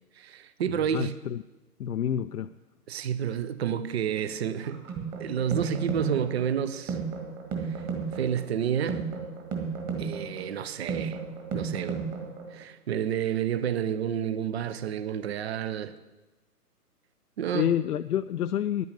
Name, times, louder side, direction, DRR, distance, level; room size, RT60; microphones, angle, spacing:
voice 1, 0.2-1.1 2.9-4.8 5.2-7.0 7.6-7.8 8.1-9.0 10.0-11.2 11.5-12.0 12.5-16.0 17.4-17.7, right 8 dB, 40° right, 0.7 m, -30 dB
voice 2, 0.7-1.4 1.8-2.5 17.5-18.9, left 10 dB, 70° left, 0.5 m, -28 dB
sound 1, 4.6-12.6, right 5 dB, 20° right, 1.7 m, -34 dB
10.5 x 9.5 x 8.1 m
figure-of-eight pair, 135°, 47 cm